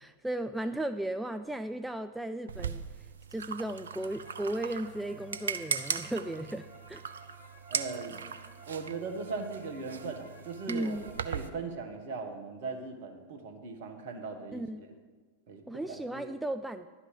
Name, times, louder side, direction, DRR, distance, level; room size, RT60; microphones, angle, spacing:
voice 1, 0.0-7.0 10.7-11.1 14.5-14.8 15.7-16.9, right 1 dB, 5° right, 9 dB, 0.3 m, -36 dB
sound 1, 2.5-11.5, right 6 dB, 70° right, 0.5 m, -39 dB
sound 2, 3.8-11.5, right 1 dB, 55° left, 4.0 m, -55 dB
voice 2, 7.7-8.2 8.7-11.0 11.2-14.6 15.5-16.3, right 4 dB, 50° right, 5 dB, 1.4 m, -39 dB
11.0 x 5.8 x 8.0 m, 1.4 s
figure-of-eight pair, 90°, 0 cm